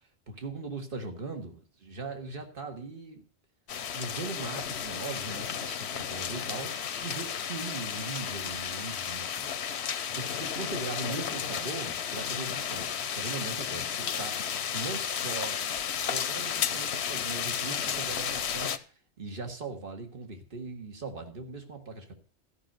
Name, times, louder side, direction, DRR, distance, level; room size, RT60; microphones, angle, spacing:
voice 1, 0.3-3.2 3.9-9.5 10.1-22.1, right 3 dB, 55° right, 4 dB, 1.9 m, -40 dB
sound 1, 3.7-18.8, left 8 dB, 85° left, 1.0 m, -33 dB
13.5 x 5.9 x 6.6 m, 0.39 s
omnidirectional pair, 1.1 m